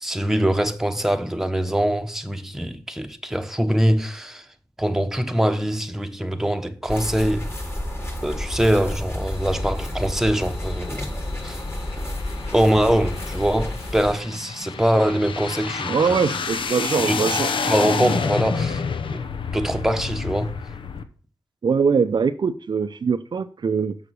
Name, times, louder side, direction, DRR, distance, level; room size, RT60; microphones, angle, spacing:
voice 1, 0.0-4.5 4.8-7.5 8.2-11.1 11.4-11.6 12.5-16.2 17.0-18.8 19.1-20.6, equal, 5° right, 1.1 m, -23 dB
sound 1, 6.9-14.2, left 1 dB, 30° left, 3.8 m, -30 dB
sound 2, 9.3-21.0, left 5 dB, 75° left, 0.8 m, -30 dB
voice 2, 15.9-17.5 21.6-24.0, right 5 dB, 60° right, 0.5 m, -22 dB
7.0 x 5.9 x 6.4 m
cardioid pair, 55°, 9 cm